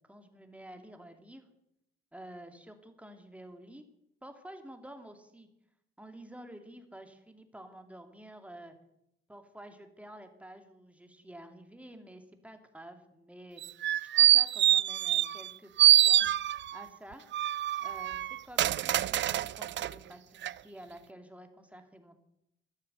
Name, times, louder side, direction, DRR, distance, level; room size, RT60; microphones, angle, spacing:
voice 1, 0.1-1.5 2.1-3.8 4.2-5.5 6.0-8.7 9.3-13.6 14.2-15.7 16.0-16.3 16.7-17.3 17.8-22.2, right 1 dB, 5° right, 6 dB, 2.6 m, -50 dB
sound 1, 13.6-15.5 15.8-16.8 17.3-19.9 20.4-20.5, right 12 dB, 40° right, 0.5 m, -25 dB
12.5 x 11.0 x 7.9 m, 0.82 s
figure-of-eight pair, 45°, 29 cm